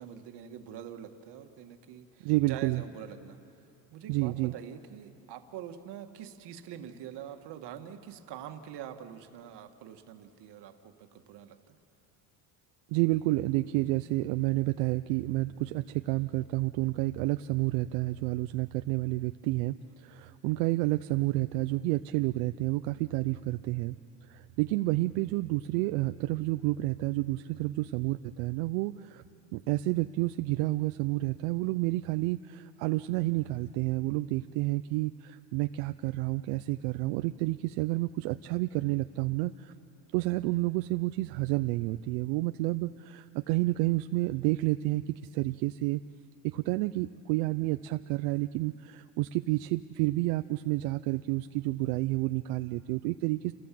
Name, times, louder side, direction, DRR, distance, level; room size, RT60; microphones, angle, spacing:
voice 1, 0.0-3.4 3.9-11.8, right 10 dB, 60° right, 6 dB, 1.9 m, -44 dB
voice 2, 2.2-2.8 4.1-4.5 12.9-23.9 24.3-29.2 29.5-39.7 40.1-46.0 46.4-53.5, right 19 dB, 80° right, 10 dB, 0.7 m, -30 dB
29.0 x 17.0 x 7.7 m, 2.6 s
supercardioid pair, 115°, 47 cm